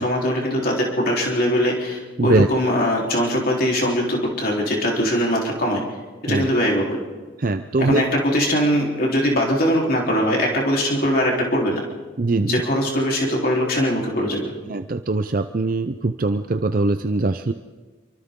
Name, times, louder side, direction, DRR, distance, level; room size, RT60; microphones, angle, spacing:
voice 1, 0.0-5.8 6.2-7.0 7.8-11.8 12.4-14.5, equal, 50° left, -2 dB, 3.7 m, -21 dB
voice 2, 7.4-8.0 12.2-12.6 14.7-17.5, right 2 dB, 45° right, 8 dB, 0.5 m, -21 dB
28.5 x 24.0 x 3.8 m, 1.4 s
head